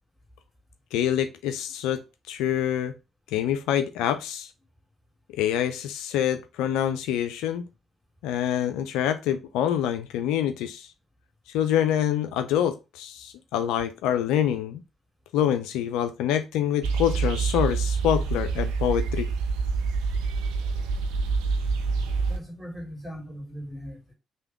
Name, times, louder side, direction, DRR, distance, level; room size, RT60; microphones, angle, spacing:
voice 1, 0.9-2.9 3.3-4.5 5.3-7.7 8.2-10.9 11.5-14.8 15.3-19.3, left 10 dB, 75° left, 0.3 m, -26 dB
sound 1, 16.8-22.4, right 4 dB, 80° right, 0.4 m, -26 dB
voice 2, 22.3-24.1, equal, 5° right, 2.5 m, -39 dB
3.4 x 2.8 x 4.4 m
hypercardioid pair, 45°, 0 cm